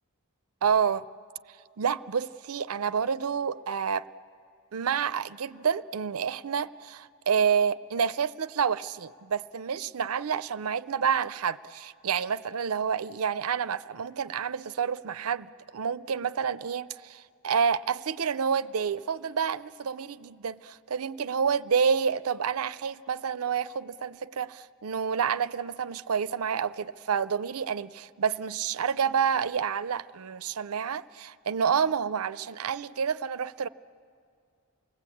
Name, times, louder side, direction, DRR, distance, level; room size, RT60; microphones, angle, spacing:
voice 1, 0.6-1.0 1.8-4.1 4.7-33.7, right 7 dB, 75° right, 0.5 m, -29 dB
28.5 x 19.5 x 8.5 m
head